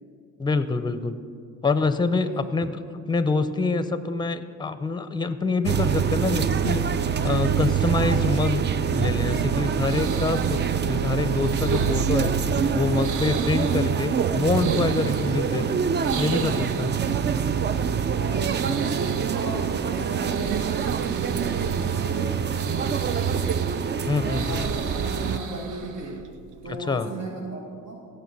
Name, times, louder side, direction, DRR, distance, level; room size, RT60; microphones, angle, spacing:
voice 1, 0.4-1.2 1.6-2.8 3.1-8.7 8.9-12.3 12.7-15.8 16.2-16.9 24.1-24.6 26.7-27.1, left 3 dB, 15° left, 11 dB, 0.6 m, -26 dB
sound 1, 5.7-25.4, right 7 dB, 35° right, 0.4 m, -25 dB
sound 2, 9.2-26.7, right 7 dB, 85° right, 0.7 m, -38 dB
voice 2, 18.2-23.6 24.3-26.3 26.6-28.1, right 2 dB, 65° right, -1 dB, 1.4 m, -36 dB
16.5 x 6.8 x 4.1 m, 2.3 s
cardioid pair, 90°, 30 cm